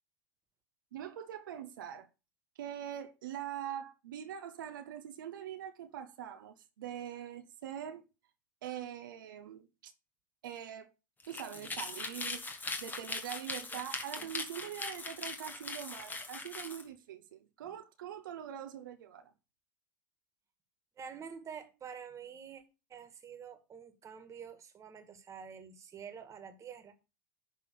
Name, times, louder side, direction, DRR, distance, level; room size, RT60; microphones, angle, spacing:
voice 1, 0.9-2.1 2.6-8.1 8.6-9.9 10.4-10.9 11.3-12.4 12.8-19.3, right 10 dB, 80° right, 0.9 m, -43 dB
sound 1, 11.2-16.8, left 3 dB, 15° left, 1.6 m, -41 dB
voice 2, 21.0-22.6 22.9-26.9, right 7 dB, 30° right, 1.9 m, -48 dB
11.0 x 3.8 x 6.7 m
hypercardioid pair, 105°, 11 cm